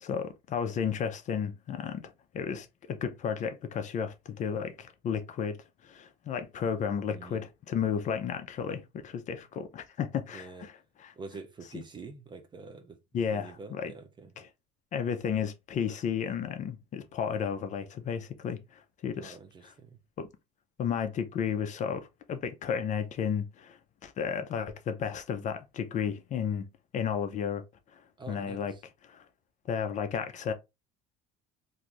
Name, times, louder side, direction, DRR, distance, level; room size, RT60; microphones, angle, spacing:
voice 1, 0.0-5.6 5.8-10.7 11.0-11.1 11.7-11.8 13.1-13.9 14.4-14.5 14.9-19.4 19.6-19.7 20.2-20.3 20.8-26.7 26.9-27.6 28.3-28.7 29.1-29.2 29.7-30.5, left 7 dB, 35° left, 0.4 m, -33 dB
voice 2, 7.1-7.4 10.3-10.7 11.2-13.0 13.3-14.3 19.2-20.0 28.2-28.8, right 4 dB, 20° right, 0.4 m, -46 dB
2.6 x 2.4 x 3.0 m
cardioid pair, 125°, 21 cm